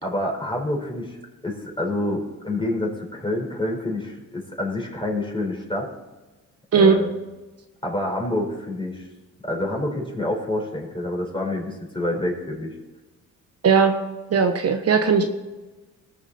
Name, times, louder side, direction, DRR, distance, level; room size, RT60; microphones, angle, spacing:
voice 1, 0.0-5.9 6.7-7.1 7.8-9.1 9.4-12.7, left 1 dB, 15° left, 1 dB, 4.4 m, -27 dB
voice 2, 13.6-13.9 14.3-15.3, right 5 dB, 45° right, 6 dB, 1.1 m, -17 dB
19.0 x 7.1 x 4.2 m, 1.2 s
cardioid pair, 85°, 34 cm